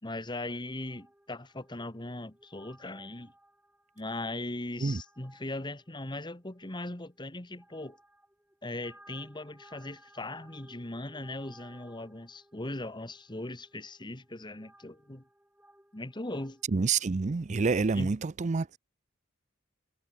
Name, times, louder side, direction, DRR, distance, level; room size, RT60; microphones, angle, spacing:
voice 1, 0.0-3.3 4.0-8.0 8.6-15.2 15.9-16.6 17.9-18.1, left 2 dB, 20° left, 1.7 m, -39 dB
sound 1, 0.6-16.6, right 1 dB, 5° right, 7.0 m, -60 dB
voice 2, 16.7-18.8, right 4 dB, 35° right, 0.5 m, -28 dB
head